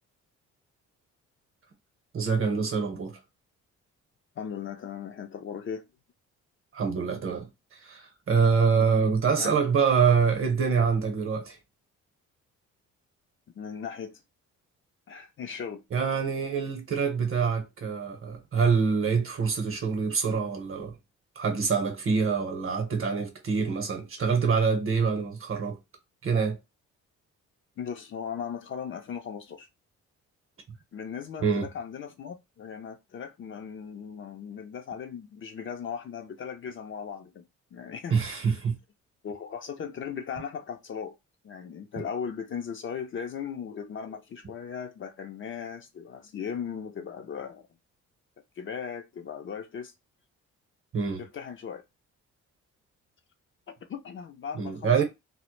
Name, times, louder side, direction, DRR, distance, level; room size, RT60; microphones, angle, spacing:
voice 1, 2.1-3.2 6.7-11.6 15.9-21.0 21.4-25.8 26.2-26.6 31.4-31.7 38.1-38.8 50.9-51.2 54.5-55.0, right 5 dB, 45° right, 0.8 m, -25 dB
voice 2, 4.4-5.8 8.7-8.9 9.4-9.5 13.6-14.2 15.1-15.8 27.8-29.7 30.9-37.4 37.7-38.5 39.2-41.2 41.4-47.7 48.6-49.9 51.2-51.8 53.9-55.0, left 7 dB, 40° left, 0.4 m, -37 dB
2.0 x 2.0 x 3.0 m
cardioid pair, 90°, 30 cm